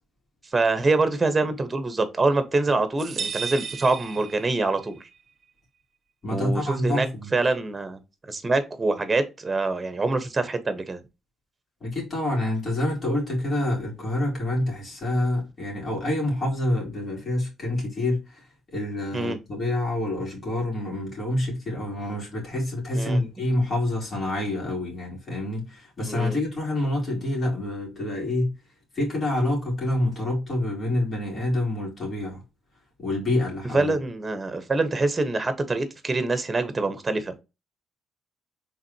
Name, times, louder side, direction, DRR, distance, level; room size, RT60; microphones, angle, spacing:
voice 1, 0.5-5.1 6.3-7.1 7.3-8.0 8.3-11.0 19.1-19.4 22.9-23.2 26.1-26.4 33.7-37.3, right 3 dB, 25° right, 1.2 m, -25 dB
sound 1, 3.0-4.9, right 6 dB, 55° right, 0.5 m, -34 dB
voice 2, 6.2-7.3 11.8-28.6 28.9-32.4 33.0-33.9, left 1 dB, 40° left, 3.1 m, -27 dB
4.9 x 3.7 x 2.9 m
cardioid pair, 90°, 0 cm